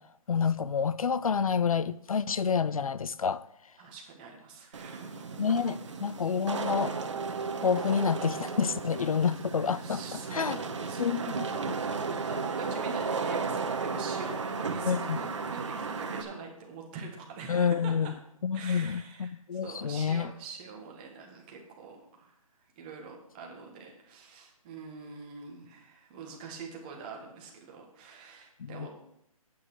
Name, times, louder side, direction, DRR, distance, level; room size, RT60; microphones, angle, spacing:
voice 1, 0.3-3.4 5.4-6.9 7.6-10.0 10.3-10.6 11.0-11.2 14.8-15.2 17.5-18.1 18.4-20.3 28.6-28.9, left 6 dB, 70° left, 16 dB, 0.5 m, -28 dB
voice 2, 3.8-5.7 9.8-17.9 18.5-22.3 22.8-28.9, right 5 dB, 15° right, 1 dB, 1.5 m, -45 dB
Wind / Rain, 4.7-16.2, right 4 dB, 55° right, 1.1 m, -34 dB
11.0 x 8.7 x 4.7 m, 0.74 s
hypercardioid pair, 170°, 19 cm